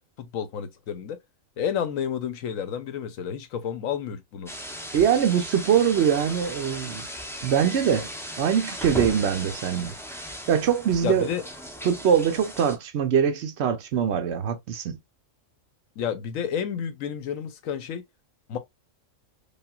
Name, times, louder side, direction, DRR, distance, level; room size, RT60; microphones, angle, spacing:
voice 1, 0.2-1.2 1.6-4.5 11.0-11.4 16.0-18.0 18.5-18.6, left 8 dB, 90° left, 1.2 m, -30 dB
sound 1, 4.5-12.8, equal, 5° left, 0.4 m, -37 dB
voice 2, 4.9-7.1 7.4-8.1 8.4-9.9 10.5-11.3 11.8-15.0, right 8 dB, 65° right, 0.8 m, -23 dB
5.3 x 2.4 x 2.3 m
omnidirectional pair, 1.3 m